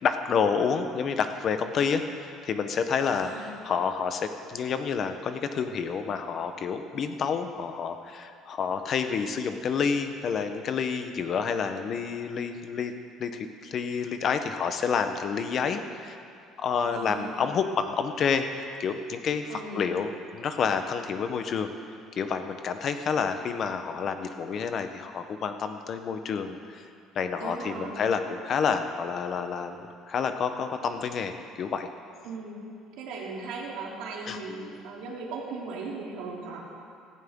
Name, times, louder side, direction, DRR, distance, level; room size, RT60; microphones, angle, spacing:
voice 1, 0.0-12.9 13.2-16.2 16.6-21.7 22.2-26.9 27.1-29.8 30.1-31.9 34.3-34.4, left 6 dB, 40° left, 8 dB, 0.8 m, -29 dB
voice 2, 3.0-3.6 16.9-17.4 19.5-19.9 27.3-28.0 32.2-32.6 33.0-36.6, right 3 dB, 80° right, -3 dB, 3.0 m, -38 dB
16.0 x 15.0 x 3.7 m, 2.4 s
cardioid pair, 155°, 0 cm